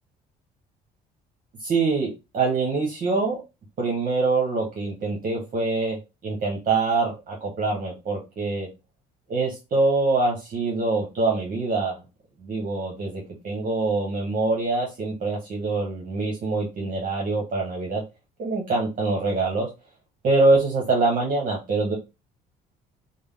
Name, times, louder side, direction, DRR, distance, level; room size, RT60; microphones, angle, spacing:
voice 1, 1.6-3.4 3.8-6.0 6.2-8.7 9.3-12.0 12.4-18.0 18.4-19.7 20.2-21.9, right 3 dB, 50° right, -2 dB, 1.1 m, -24 dB
3.4 x 2.1 x 3.6 m, 0.26 s
cardioid pair, 110°, 17 cm